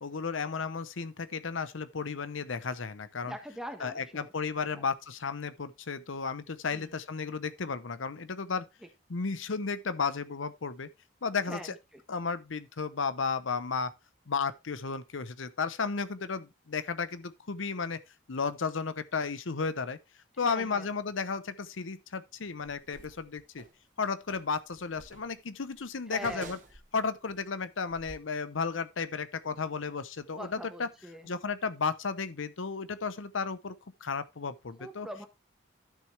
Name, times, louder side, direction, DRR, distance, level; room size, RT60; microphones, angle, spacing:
voice 1, 0.0-3.4 3.8-8.6 9.1-10.9 11.2-11.8 12.1-13.9 14.3-18.0 18.3-20.0 20.4-23.6 24.0-26.6 26.9-30.9 31.2-33.8 34.0-35.1, left 5 dB, 90° left, 0.8 m, -33 dB
voice 2, 3.2-4.3 4.7-4.8 6.7-6.9 11.5-12.0 20.4-20.9 26.1-26.6 30.3-31.3 34.8-35.3, equal, 5° right, 1.3 m, -43 dB
sound 1, 22.6-23.8 24.3-27.4 27.9-28.2, right 2 dB, 40° right, 1.3 m, -50 dB
12.0 x 6.4 x 3.3 m
head